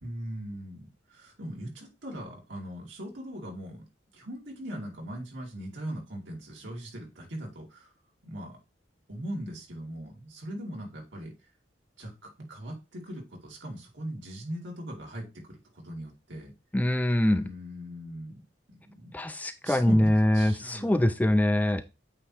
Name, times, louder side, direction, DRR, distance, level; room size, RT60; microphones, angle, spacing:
voice 1, 0.0-3.8 4.1-7.9 8.2-8.6 9.1-11.3 12.0-16.5 17.3-18.4 18.7-19.1 19.6-21.1, equal, 75° right, -1 dB, 2.7 m, -40 dB
voice 2, 16.7-17.5 19.1-21.8, left 1 dB, 10° left, 9 dB, 0.4 m, -24 dB
8.6 x 3.0 x 4.7 m, 0.28 s
head